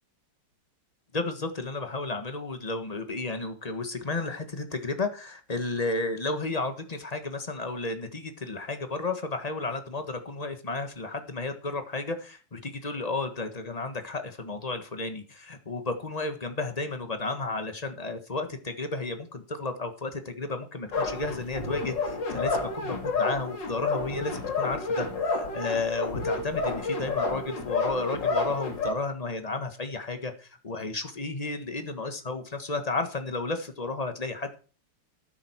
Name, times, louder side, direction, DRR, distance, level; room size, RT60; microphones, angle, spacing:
voice 1, 1.1-34.5, left 3 dB, 20° left, 7 dB, 1.2 m, -33 dB
sound 1, 20.9-28.9, left 3 dB, 55° left, 3.1 m, -30 dB
13.0 x 10.0 x 4.6 m, 0.36 s
omnidirectional pair, 2.4 m